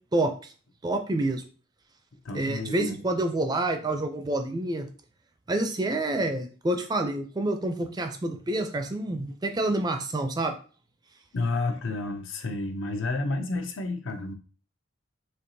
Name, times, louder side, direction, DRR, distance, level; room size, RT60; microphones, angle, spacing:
voice 1, 0.1-0.5 0.8-1.4 2.3-4.9 5.5-10.6, right 2 dB, 20° right, 5 dB, 0.4 m, -28 dB
voice 2, 2.2-3.0 11.3-14.3, left 2 dB, 70° left, 5 dB, 0.6 m, -30 dB
4.4 x 2.8 x 2.7 m, 0.39 s
head